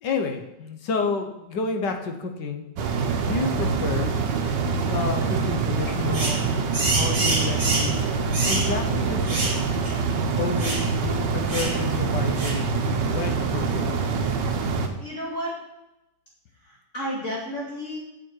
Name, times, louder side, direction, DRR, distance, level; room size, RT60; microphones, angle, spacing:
voice 1, 0.0-2.7 3.2-4.2 4.9-6.4 6.9-8.0 8.4-9.6 10.4-12.7 13.1-13.9, left 4 dB, 75° left, 5 dB, 1.7 m, -30 dB
sound 1, 2.8-14.9, right 5 dB, 75° right, 1.6 m, -25 dB
sound 2, 6.1-6.4 6.7-7.9 8.3-8.7 9.3-9.6 9.8-10.0 10.6-10.9 11.5-11.8 12.4-12.6, right 2 dB, 45° right, 2.5 m, -27 dB
voice 2, 15.0-15.7 16.6-18.0, equal, 40° left, -6 dB, 2.5 m, -32 dB
8.0 x 7.7 x 4.6 m, 0.89 s
omnidirectional pair, 1.9 m